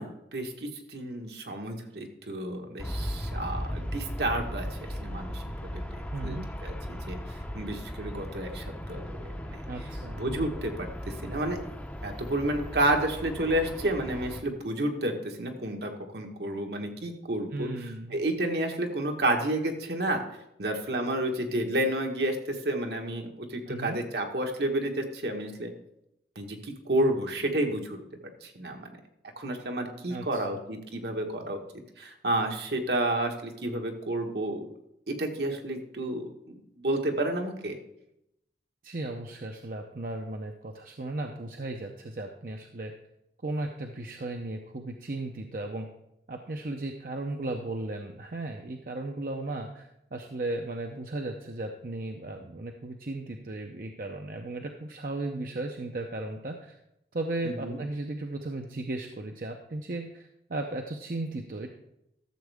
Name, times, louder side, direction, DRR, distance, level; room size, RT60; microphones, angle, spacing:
voice 1, 0.0-4.6 5.0-5.4 5.7-5.8 6.2-6.4 6.6-7.2 7.5-9.6 10.1-10.9 11.2-11.6 12.0-17.7 18.1-20.2 20.6-25.7 26.3-28.0 28.4-28.9 29.4-31.6 32.0-34.7 35.1-37.8 57.4-57.8, right 1 dB, 70° right, 3 dB, 1.4 m, -30 dB
Aircraft, 2.8-14.4, equal, 10° left, 0.6 m, -37 dB
voice 2, 6.1-6.5 9.7-10.2 17.5-18.2 23.7-24.0 30.1-30.6 38.8-42.9 43.4-45.9 46.3-56.8 57.1-61.7, right 2 dB, 50° right, 3 dB, 0.7 m, -36 dB
13.0 x 7.3 x 3.5 m, 0.82 s
head